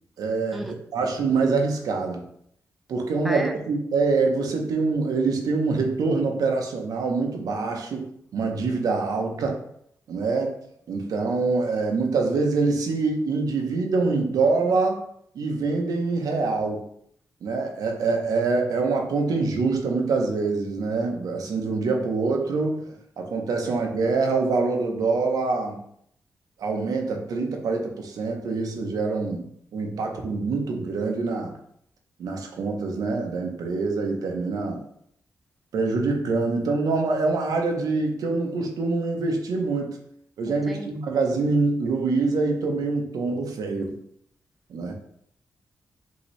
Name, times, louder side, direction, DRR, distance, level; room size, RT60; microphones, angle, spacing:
voice 1, 0.2-2.3 2.9-9.6 10.1-10.6 10.9-15.0 15.3-16.9 17.4-22.8 23.2-25.8 26.6-31.5 32.2-34.8 35.7-40.0 40.4-43.9 44.7-44.9, right 3 dB, 90° right, 2 dB, 0.8 m, -25 dB
voice 2, 40.5-40.9, right 1 dB, ahead, 6 dB, 0.4 m, -32 dB
5.4 x 2.8 x 3.2 m, 0.70 s
wide cardioid pair, 125°, 6 cm